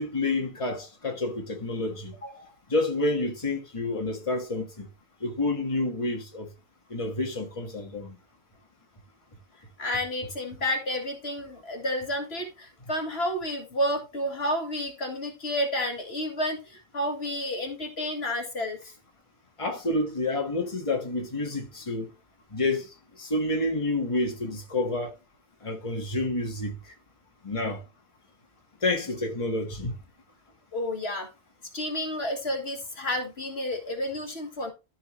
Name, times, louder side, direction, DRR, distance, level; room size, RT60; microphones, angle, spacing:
voice 1, 0.0-2.1 2.7-4.9 5.2-6.5 6.9-8.2 19.6-22.1 22.5-22.9 23.2-25.1 25.6-26.7 27.4-27.8 28.8-30.0, left 2 dB, 30° left, 1.7 m, -29 dB
voice 2, 2.2-2.5 9.8-18.9 30.7-31.3 31.7-34.7, left 1 dB, 65° left, 2.0 m, -30 dB
13.5 x 4.7 x 3.2 m
omnidirectional pair, 1.1 m